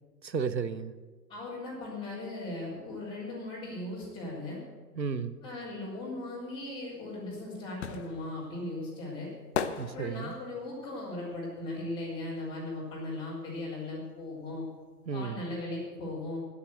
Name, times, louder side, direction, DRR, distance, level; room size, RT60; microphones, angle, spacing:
voice 1, 0.2-0.9 5.0-5.4 9.8-10.3 15.1-15.4, right 5 dB, 90° right, 14 dB, 0.9 m, -33 dB
voice 2, 1.3-4.6 5.4-9.3 9.9-14.6 15.1-16.4, left 2 dB, 10° left, -9 dB, 3.9 m, -38 dB
sound 1, 6.9-12.8 13.1-14.7 14.9-15.0, left 8 dB, 40° left, 0.8 m, -39 dB
10.0 x 9.8 x 7.8 m, 1.4 s
figure-of-eight pair, 110°, 50 cm